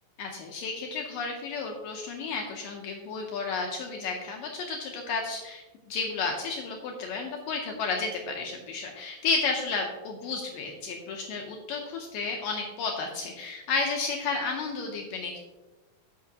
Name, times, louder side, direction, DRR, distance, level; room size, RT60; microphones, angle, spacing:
voice 1, 0.2-5.6 5.9-15.4, left 4 dB, 75° left, 1 dB, 2.3 m, -32 dB
14.5 x 5.6 x 2.8 m, 1.2 s
omnidirectional pair, 4.2 m